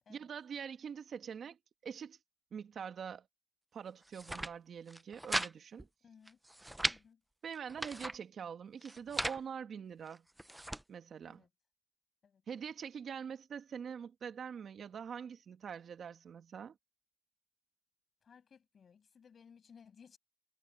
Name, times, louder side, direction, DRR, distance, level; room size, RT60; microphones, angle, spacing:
voice 1, 0.1-2.2 2.5-3.3 3.7-5.9 7.4-10.3 10.9-11.4 12.5-16.7, right 7 dB, 55° right, 2.0 m, -44 dB
sound 1, 4.0-4.5 4.9-5.5 5.8-5.9 6.3-7.0 7.5-8.2 8.8-9.4 10.1-10.8, right 1 dB, 5° right, 0.6 m, -37 dB
voice 2, 6.0-6.4 6.9-7.2 11.2-11.5 12.2-12.4 18.2-20.2, left 6 dB, 50° left, 7.7 m, -60 dB
cardioid pair, 90°, 0 cm